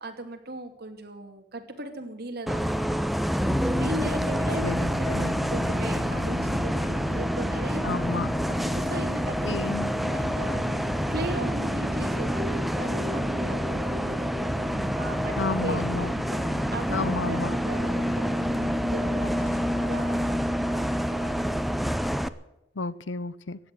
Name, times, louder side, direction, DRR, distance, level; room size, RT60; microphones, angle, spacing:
voice 1, 0.0-2.6 2.9-3.1 3.7-8.2 8.5-9.4 9.6-14.3 15.0-15.3 15.6-15.8 16.3-16.4 16.7-21.3, right 1 dB, 55° right, 4 dB, 2.6 m, -38 dB
Bus, 2.5-22.3, equal, ahead, 0.6 m, -28 dB
sound 1, 3.4-19.6, equal, 35° right, 1.9 m, -35 dB
voice 2, 4.6-5.3 7.8-8.3 9.4-9.9 15.4-16.1 16.9-17.5 22.8-23.6, left 3 dB, 85° left, 18 dB, 0.7 m, -31 dB
15.0 x 9.6 x 9.9 m, 0.90 s
head